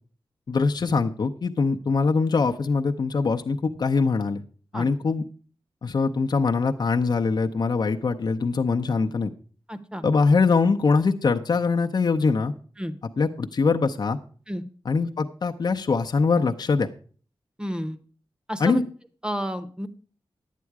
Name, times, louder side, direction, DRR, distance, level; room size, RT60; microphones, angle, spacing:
voice 1, 0.5-4.4 4.7-5.2 5.8-9.3 10.0-12.5 13.2-14.2 14.9-16.9 18.6-18.8, left 4 dB, 55° left, 4 dB, 0.7 m, -23 dB
voice 2, 9.7-10.0 12.8-12.9 14.5-14.6 17.6-18.0 18.5-18.8 19.2-19.9, equal, 10° right, 11 dB, 0.9 m, -30 dB
11.5 x 8.3 x 4.7 m, 0.42 s
wide cardioid pair, 110°, 9 cm